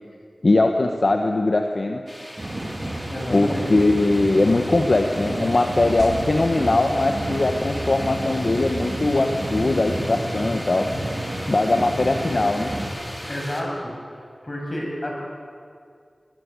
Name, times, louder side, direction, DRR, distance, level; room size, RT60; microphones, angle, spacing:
voice 1, 0.4-2.0 3.3-10.9 11.5-12.7, left 2 dB, 60° left, 4 dB, 1.4 m, -20 dB
sound 1, 2.1-13.6, equal, 10° left, 3.9 m, -38 dB
sound 2, 2.4-12.9, right 1 dB, 40° right, 3.8 m, -30 dB
voice 2, 3.1-3.7 13.3-13.9 14.4-15.1, left 1 dB, 35° left, -1 dB, 7.3 m, -29 dB
sound 3, 6.0-10.3, right 3 dB, 75° right, 4.1 m, -39 dB
22.0 x 19.0 x 8.3 m, 2.2 s
wide cardioid pair, 55°, 0 cm